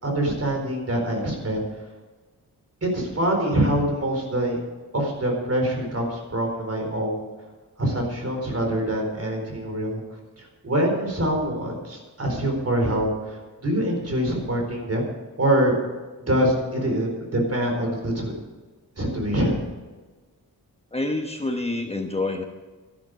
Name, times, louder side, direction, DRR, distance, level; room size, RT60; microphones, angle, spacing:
voice 1, 0.0-1.6 2.8-4.6 4.9-7.3 7.8-10.0 10.4-13.4 13.6-15.1 15.4-15.8 16.3-18.3 19.0-19.5, right 1 dB, 40° right, 2 dB, 4.4 m, -24 dB
voice 2, 20.9-22.4, left 2 dB, 15° left, 3 dB, 1.1 m, -27 dB
12.5 x 12.0 x 6.5 m, 1.3 s
wide cardioid pair, 130°, 37 cm